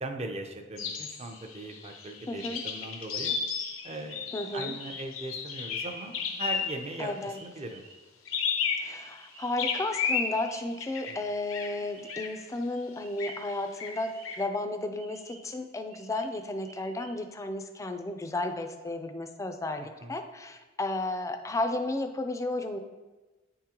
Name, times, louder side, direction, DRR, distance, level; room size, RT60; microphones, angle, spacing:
voice 1, 0.0-3.4 3.8-7.8 11.1-11.2 19.8-20.2, right 2 dB, 30° right, 4 dB, 0.5 m, -39 dB
sound 1, 0.8-7.0 8.3-9.2 9.6-11.8 12.1-12.3 13.2-13.5 13.8-14.4, left 6 dB, 90° left, 0.7 m, -33 dB
voice 2, 2.3-2.6 4.3-4.7 7.0-7.4 8.8-22.8, left 2 dB, 15° left, 6 dB, 0.4 m, -33 dB
sound 2, 6.0-11.0 11.3-12.4 13.0-14.6 14.9-17.1, right 3 dB, 80° right, 1.1 m, -54 dB
9.0 x 3.6 x 2.9 m, 1.2 s
head